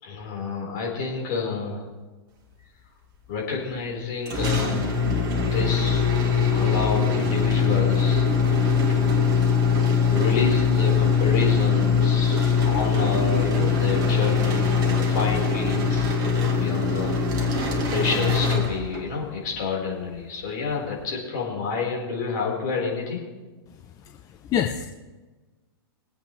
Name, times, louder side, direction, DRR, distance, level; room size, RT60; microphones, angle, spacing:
voice 1, 0.0-1.9 3.3-5.0 5.4-9.4 10.1-17.2 17.9-23.2, left 4 dB, 50° left, -2 dB, 4.8 m, -29 dB
sound 1, 4.3-19.2, left 5 dB, 30° right, 2.1 m, -22 dB
voice 2, 23.7-24.9, left 9 dB, 25° left, 4 dB, 0.8 m, -28 dB
22.5 x 8.5 x 3.4 m, 1.2 s
figure-of-eight pair, 105°, 13 cm